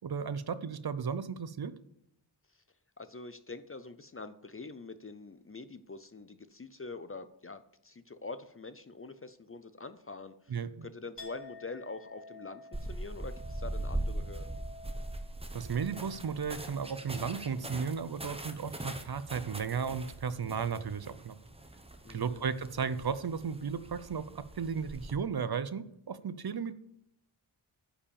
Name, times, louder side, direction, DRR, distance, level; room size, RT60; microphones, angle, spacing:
voice 1, 0.0-1.7 10.5-10.9 15.5-21.3 22.1-26.7, right 6 dB, 50° right, 14 dB, 0.6 m, -35 dB
voice 2, 3.0-14.6 22.0-22.5, left 3 dB, 30° left, 11 dB, 0.5 m, -45 dB
Chink clink, 11.2-18.9 19.2-19.9, left 2 dB, 55° left, 3.8 m, -53 dB
sound 1, 12.7-25.2, right 1 dB, 10° right, 0.8 m, -41 dB
9.9 x 5.2 x 6.9 m, 0.75 s
wide cardioid pair, 100°, 49 cm